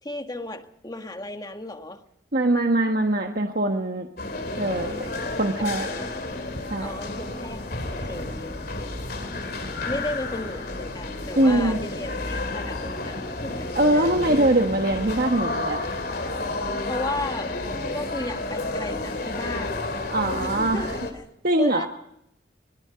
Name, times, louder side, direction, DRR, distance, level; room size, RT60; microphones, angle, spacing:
voice 1, 0.0-2.0 5.6-6.2 6.8-8.5 9.3-13.7 13.9-14.6 16.9-17.5 17.9-19.9 20.4-21.1 21.6-21.9, left 1 dB, 20° left, 1.6 m, -35 dB
voice 2, 2.3-4.1 4.6-5.1 5.4-5.9 6.7-6.9 11.3-11.8 13.7-15.9 20.1-20.9 21.4-21.9, right 1 dB, 50° right, 1.4 m, -22 dB
sound 1, 4.2-21.1, left 2 dB, 50° left, 3.2 m, -31 dB
24.5 x 19.5 x 5.8 m
head